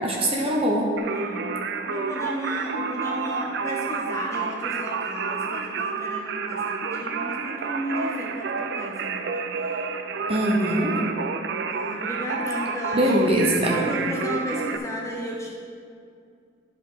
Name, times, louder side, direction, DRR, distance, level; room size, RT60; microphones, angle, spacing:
voice 1, 0.0-0.9 10.3-11.0 12.9-13.8, equal, 30° right, -1 dB, 0.9 m, -22 dB
Singing, 1.0-14.8, right 5 dB, 55° right, 0.4 m, -30 dB
voice 2, 1.1-1.6 1.9-9.9 11.7-13.1 13.7-15.5, equal, 15° left, -3 dB, 0.7 m, -34 dB
10.5 x 5.0 x 4.1 m, 2.3 s
head